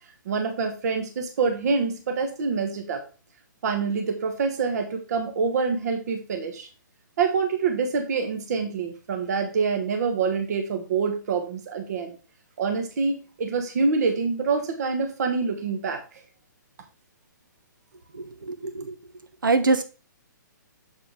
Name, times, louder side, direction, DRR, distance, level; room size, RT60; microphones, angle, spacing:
voice 1, 0.2-3.0 3.6-6.7 7.2-12.1 12.6-16.0, right 5 dB, 55° right, 5 dB, 1.2 m, -26 dB
voice 2, 18.1-19.0 19.4-19.8, right 3 dB, 90° right, 9 dB, 1.1 m, -24 dB
7.3 x 4.4 x 3.6 m, 0.34 s
hypercardioid pair, 145°, 11 cm